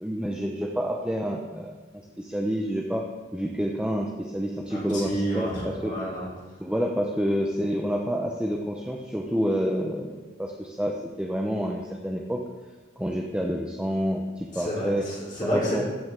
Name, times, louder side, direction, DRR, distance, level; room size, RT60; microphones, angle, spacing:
voice 1, 0.0-3.0 3.3-5.9 6.6-12.4 13.0-15.0 15.4-15.8, equal, 5° right, -1 dB, 0.6 m, -28 dB
voice 2, 4.7-6.3 14.5-15.8, equal, 45° left, -8 dB, 2.8 m, -30 dB
14.0 x 5.6 x 3.7 m, 1.3 s
head